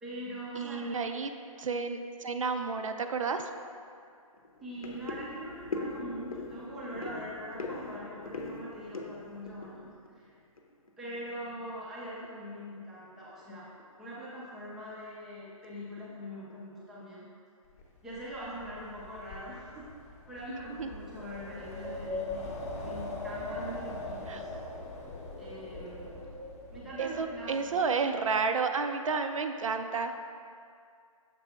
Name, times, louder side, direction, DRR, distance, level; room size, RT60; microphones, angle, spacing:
voice 1, 0.0-1.2 4.6-10.4 11.0-13.7 14.0-17.3 18.0-19.9 20.3-22.6 22.8-24.5 25.4-26.3 26.7-27.8, equal, ahead, -8 dB, 0.4 m, -42 dB
voice 2, 0.6-1.3 1.6-3.5 20.5-20.9 24.3-24.4 27.0-30.1, right 5 dB, 65° right, 7 dB, 0.4 m, -31 dB
sound 1, 3.3-3.4 3.8-4.0 4.3-10.9 11.1-11.8 12.1-12.4 12.7-12.8 13.2-13.4 13.8-13.9 14.4-14.9 15.5-15.7 16.0-16.7 17.0-17.1, left 2 dB, 75° left, 0.7 m, -41 dB
Wind, 17.8-27.9, left 2 dB, 30° left, 0.8 m, -41 dB
6.7 x 4.8 x 3.5 m, 2.3 s
hypercardioid pair, 155°, 18 cm